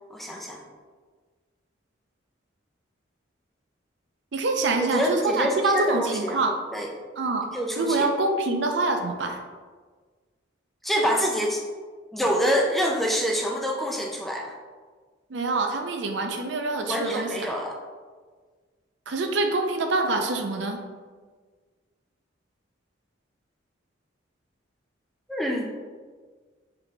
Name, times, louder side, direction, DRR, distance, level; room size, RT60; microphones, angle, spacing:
voice 1, 0.1-0.6 4.9-6.9 7.5-8.1 10.8-11.6 12.1-14.5 16.8-17.7 25.3-25.7, equal, ahead, -1 dB, 0.3 m, -26 dB
voice 2, 4.3-6.6 7.2-7.5 7.8-9.4 15.3-17.6 19.1-20.8, right 3 dB, 60° right, 4 dB, 0.5 m, -25 dB
4.0 x 3.5 x 3.3 m, 1.5 s
head